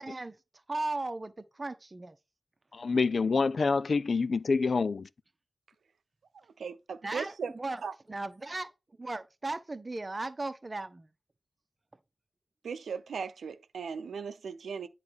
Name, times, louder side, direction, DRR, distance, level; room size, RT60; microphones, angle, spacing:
voice 1, 0.0-2.2 7.0-7.8 8.1-11.1, right 2 dB, 35° right, 0.9 m, -37 dB
voice 2, 2.7-5.1, left 4 dB, 65° left, 0.5 m, -27 dB
voice 3, 6.6-7.5 7.8-7.9 12.6-14.9, right 6 dB, 90° right, 0.7 m, -37 dB
8.6 x 3.3 x 6.4 m
cardioid pair, 55°, 0 cm